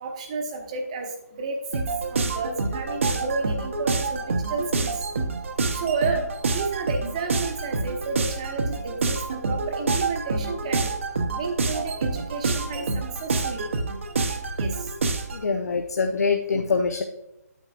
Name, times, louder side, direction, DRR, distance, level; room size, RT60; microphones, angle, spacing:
voice 1, 0.0-1.8 2.1-5.0 5.7-10.9 11.4-12.9 13.2-13.7 14.6-14.9, right 4 dB, 25° right, 4 dB, 1.0 m, -31 dB
sound 1, 1.7-15.4, right 3 dB, 50° right, 0.9 m, -27 dB
voice 2, 15.3-17.0, left 4 dB, 70° left, 5 dB, 0.7 m, -24 dB
8.8 x 8.0 x 2.4 m, 0.90 s
hypercardioid pair, 175°, 9 cm